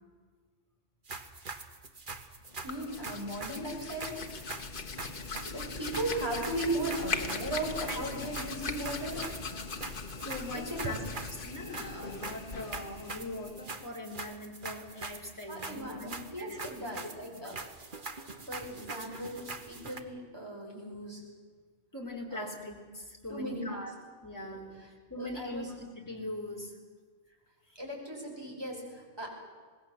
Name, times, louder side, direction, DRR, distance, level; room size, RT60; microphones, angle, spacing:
sound 1, 1.1-20.0, right 3 dB, 45° right, 1.6 m, -43 dB
Hands, 2.5-13.9, left 4 dB, 45° left, 1.5 m, -40 dB
voice 1, 2.6-4.6 5.4-9.2 10.5-11.0 15.5-17.6 18.4-21.2 22.3-22.5 23.3-23.8 24.4-24.6 25.2-25.7 27.8-29.3, right 1 dB, 20° right, 0 dB, 5.6 m, -37 dB
voice 2, 10.2-11.0 11.4-16.1 16.4-16.9 21.9-23.9 24.2-24.8 25.1-26.8, left 1 dB, 15° left, 0 dB, 4.0 m, -41 dB
26.0 x 19.5 x 7.4 m, 1.5 s
omnidirectional pair, 1.3 m